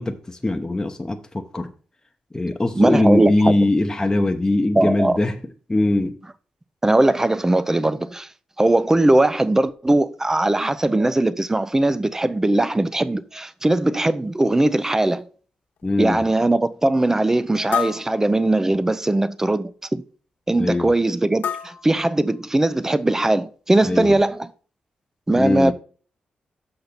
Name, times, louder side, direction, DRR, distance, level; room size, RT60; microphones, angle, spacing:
voice 1, 0.0-1.7 2.3-5.4 5.7-6.1 15.8-16.2 20.6-20.9 23.8-24.2 25.4-25.7, left 2 dB, 20° left, 0.8 m, -21 dB
voice 2, 2.7-3.6 4.8-5.2 6.8-8.3 8.6-15.2 16.0-20.0 20.5-24.5 25.3-25.7, right 2 dB, 15° right, 0.6 m, -20 dB
sound 1, 14.4-14.5 15.1-15.2 15.8-15.9 17.7-18.9 21.4-22.7, left 8 dB, 85° left, 1.1 m, -30 dB
6.8 x 5.7 x 4.1 m
cardioid pair, 70°, 3 cm